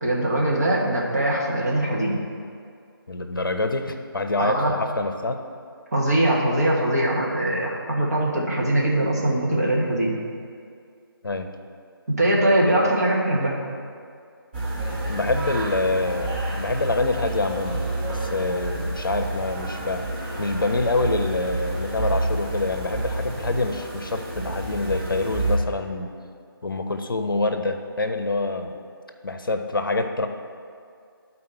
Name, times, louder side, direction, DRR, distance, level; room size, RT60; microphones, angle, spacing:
voice 1, 0.0-2.2 4.4-4.8 5.9-10.1 12.1-13.6, right 1 dB, 40° right, -4 dB, 1.4 m, -22 dB
voice 2, 3.1-5.4 11.2-11.5 15.1-20.1 20.4-26.1 26.6-28.8 29.2-30.3, left 2 dB, 60° left, 6 dB, 0.7 m, -26 dB
sound 1, 14.5-25.6, right 2 dB, 25° right, 1.2 m, -29 dB
11.0 x 4.2 x 4.4 m, 2.3 s
figure-of-eight pair, 160°, 13 cm